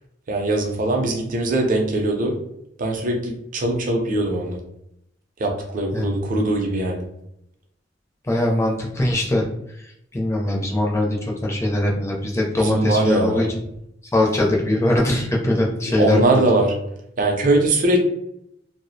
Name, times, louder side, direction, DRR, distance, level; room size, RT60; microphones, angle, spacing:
voice 1, 0.3-2.4 2.8-4.6 5.4-7.0 12.6-13.5 16.0-16.7 17.2-18.0, right 2 dB, 45° right, 2 dB, 0.5 m, -21 dB
voice 2, 8.2-9.4 9.8-13.5 14.1-16.2, left 1 dB, 15° left, -2 dB, 0.4 m, -21 dB
2.3 x 2.0 x 2.6 m, 0.78 s
head